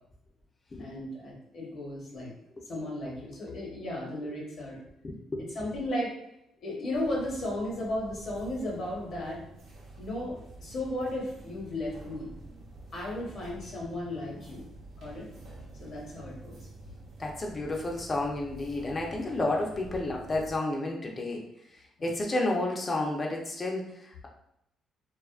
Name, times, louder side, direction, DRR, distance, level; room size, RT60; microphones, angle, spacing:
voice 1, 0.8-2.3 2.7-4.8 5.5-6.1 6.6-9.4 10.0-12.4 12.9-14.7 15.0-15.3 15.8-16.5 22.0-22.1, left 1 dB, 65° left, -3 dB, 1.0 m, -35 dB
voice 2, 5.0-5.4 17.2-21.4 22.0-24.3, left 2 dB, 30° left, 0 dB, 0.6 m, -31 dB
sound 1, 6.9-20.6, right 2 dB, 70° right, 0.7 m, -48 dB
2.6 x 2.4 x 2.4 m, 0.82 s
cardioid pair, 90°, 0 cm